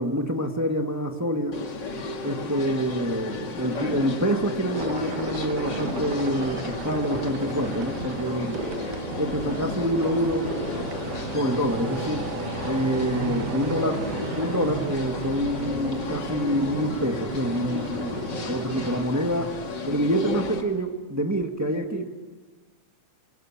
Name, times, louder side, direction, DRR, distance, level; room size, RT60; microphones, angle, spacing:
voice 1, 0.0-1.6 2.2-8.6 9.2-10.5 11.3-12.3 12.6-14.0 14.3-19.5 19.8-22.1, equal, 25° right, 4 dB, 0.4 m, -26 dB
sound 1, 1.5-20.6, left 4 dB, 40° left, 2.4 m, -33 dB
sound 2, 3.7-11.4, right 1 dB, 60° right, 6.5 m, -38 dB
sound 3, 4.7-19.1, right 6 dB, 90° right, 2.9 m, -35 dB
27.5 x 22.0 x 8.7 m, 1.3 s
omnidirectional pair, 3.4 m